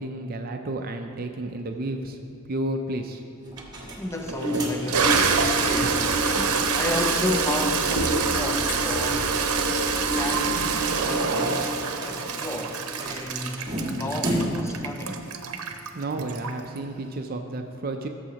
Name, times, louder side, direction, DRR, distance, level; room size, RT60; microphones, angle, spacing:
voice 1, 0.0-2.2 2.5-3.2 15.9-18.1, right 1 dB, 40° right, 0.4 m, -31 dB
sound 1, 3.5-6.7 7.0-7.1 7.4-7.5 10.2-14.8, equal, 20° right, 1.6 m, -35 dB
Toilet flush, 3.6-3.7 4.3-16.8, right 4 dB, 80° right, 0.8 m, -25 dB
voice 2, 4.0-6.1 6.7-9.4 9.9-11.7 12.0-15.2, left 2 dB, 10° left, 0.5 m, -33 dB
sound 2, 4.9-11.1, equal, 35° left, 1.1 m, -35 dB
16.5 x 7.1 x 2.9 m
head